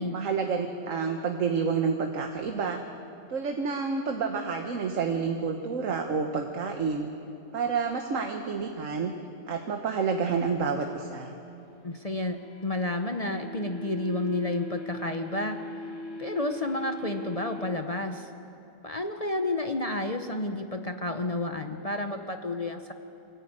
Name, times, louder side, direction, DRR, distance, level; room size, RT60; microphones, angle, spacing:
voice 1, 0.1-2.8 3.3-7.1 7.5-9.1 9.5-11.3, right 5 dB, 70° right, 4 dB, 1.5 m, -29 dB
sound 1, 11.6-17.6, left 1 dB, 65° left, 2.6 m, -41 dB
voice 2, 11.8-15.7 16.2-18.3 18.8-22.9, left 2 dB, 30° left, 6 dB, 0.8 m, -31 dB
24.0 x 15.0 x 8.8 m, 2.8 s
omnidirectional pair, 1.4 m